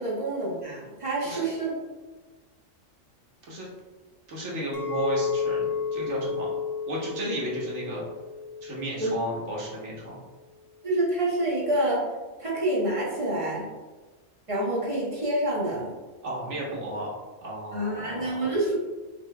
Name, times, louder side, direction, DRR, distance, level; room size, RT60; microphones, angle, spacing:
voice 1, 0.0-1.7 7.3-7.4 9.0-9.1 10.8-12.1 12.4-13.7 14.5-15.9 17.7-18.7, right 1 dB, 25° right, -7 dB, 1.2 m, -27 dB
voice 2, 4.3-6.5 6.9-8.0 8.6-10.2 16.2-17.1 17.4-18.4, right 1 dB, 65° right, -4 dB, 1.4 m, -33 dB
Chink clink, 4.7-9.9, left 6 dB, 75° left, 1.1 m, -32 dB
5.7 x 2.8 x 2.3 m, 1.3 s
omnidirectional pair, 1.3 m